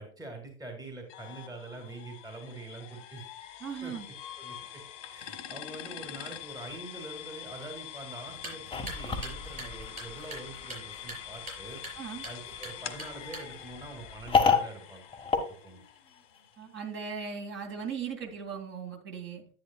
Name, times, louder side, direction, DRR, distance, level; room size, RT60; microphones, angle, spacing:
voice 1, 0.0-3.3 3.8-3.9 4.4-4.8 5.1-11.8 12.2-15.0 15.6-15.8, right 2 dB, 10° right, 3 dB, 2.2 m, -44 dB
sound 1, 1.1-16.8, left 11 dB, 55° left, 1.5 m, -45 dB
voice 2, 3.6-4.1 11.9-12.2 16.6-19.5, right 6 dB, 30° right, 2 dB, 2.6 m, -38 dB
sound 2, 8.3-13.8, right 1 dB, 85° right, 4.7 m, -45 dB
sound 3, 8.7-16.4, left 5 dB, 15° left, 1.5 m, -32 dB
10.5 x 9.5 x 2.3 m, 0.42 s
figure-of-eight pair, 90°, 41 cm